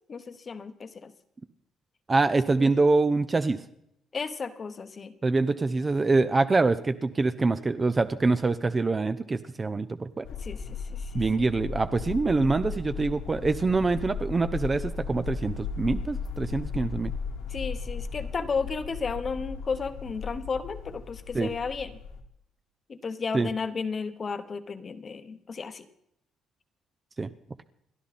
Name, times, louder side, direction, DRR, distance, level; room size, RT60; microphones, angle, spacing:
voice 1, 0.1-1.1 2.6-2.7 4.1-5.1 10.4-11.2 17.5-21.9 22.9-25.9, left 5 dB, 25° left, 11 dB, 1.0 m, -33 dB
voice 2, 2.1-3.6 5.2-10.3 11.1-17.1 21.3-21.5 23.3-23.5 27.2-27.3, right 3 dB, 20° right, 11 dB, 0.5 m, -25 dB
sound 1, 10.2-22.2, left 5 dB, 85° left, 2.2 m, -36 dB
29.0 x 11.5 x 4.2 m, 0.76 s
cardioid pair, 170°, 0 cm